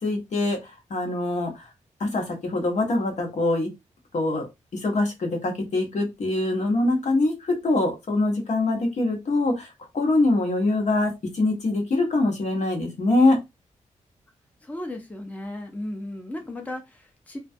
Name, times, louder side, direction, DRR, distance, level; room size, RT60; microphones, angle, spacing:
voice 1, 0.0-1.7 2.0-3.7 4.1-4.5 4.7-13.4, left 2 dB, 65° left, 2 dB, 0.9 m, -24 dB
voice 2, 14.6-17.4, left 1 dB, 10° left, 3 dB, 0.6 m, -35 dB
2.3 x 2.2 x 2.6 m, 0.21 s
cardioid pair, 80°, 13 cm